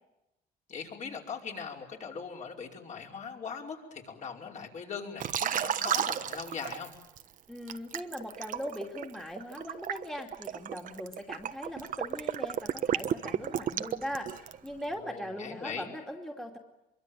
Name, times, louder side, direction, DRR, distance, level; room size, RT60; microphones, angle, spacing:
voice 1, 0.7-6.9 15.0-15.9, left 6 dB, 45° left, 0 dB, 5.2 m, -40 dB
Liquid, 5.2-7.2 7.7-14.7, right 9 dB, 50° right, 1.3 m, -33 dB
voice 2, 7.5-14.3 14.6-16.6, equal, 5° left, 1 dB, 2.6 m, -40 dB
24.5 x 23.5 x 9.2 m, 0.92 s
cardioid pair, 110°, 17 cm